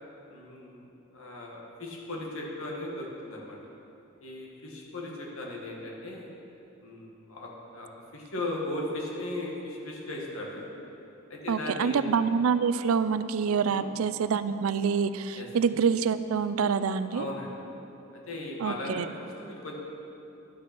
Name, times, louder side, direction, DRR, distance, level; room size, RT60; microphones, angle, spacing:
voice 1, 0.3-0.9 1.1-3.6 4.2-6.3 6.8-10.6 11.3-12.0 13.7-13.9 15.3-15.5 17.1-17.5 18.3-19.1 19.4-19.7, left 1 dB, 75° left, -2 dB, 1.8 m, -37 dB
voice 2, 11.5-17.3 18.6-19.1, right 6 dB, 80° right, 13 dB, 0.4 m, -26 dB
11.0 x 7.0 x 6.0 m, 2.9 s
head